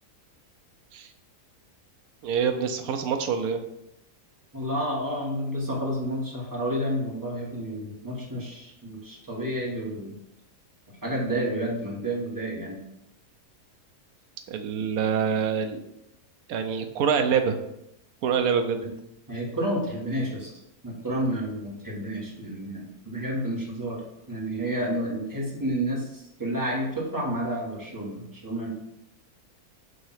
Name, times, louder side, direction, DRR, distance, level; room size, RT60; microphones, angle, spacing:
voice 1, 2.2-3.6 14.5-15.8 16.5-17.6 18.2-18.8, right 7 dB, 70° right, 6 dB, 1.1 m, -25 dB
voice 2, 4.5-10.2 11.0-12.8 18.8-18.9 19.3-20.5 20.8-24.0 24.3-28.8, right 1 dB, 15° right, -4 dB, 1.5 m, -30 dB
7.9 x 2.9 x 5.7 m, 0.83 s
omnidirectional pair, 1.7 m